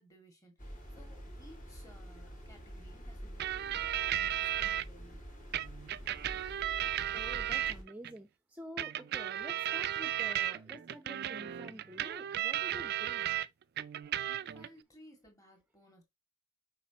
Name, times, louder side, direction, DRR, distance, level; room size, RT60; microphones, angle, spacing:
voice 1, 0.0-5.2 14.3-16.0, equal, 15° left, 2.2 m, -59 dB
sound 1, 0.6-7.8, equal, 40° left, 2.6 m, -47 dB
sound 2, 3.4-4.8 5.5-8.1 8.8-13.5 13.8-14.7, right 12 dB, 50° right, 0.3 m, -35 dB
voice 2, 7.1-13.3, equal, 5° right, 0.7 m, -49 dB
7.2 x 5.0 x 2.9 m
head